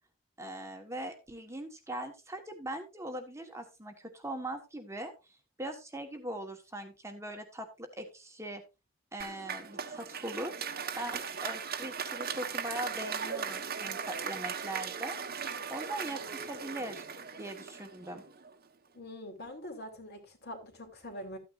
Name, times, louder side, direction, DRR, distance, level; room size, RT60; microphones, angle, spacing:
voice 1, 0.4-5.1 5.6-8.6 9.1-15.2 15.7-17.0 17.4-18.2, right 1 dB, 15° right, 1.3 m, -41 dB
Applause, 9.2-18.5, right 6 dB, 45° right, 1.2 m, -38 dB
voice 2, 18.9-21.4, left 1 dB, 50° left, 3.1 m, -44 dB
13.5 x 9.5 x 2.5 m
head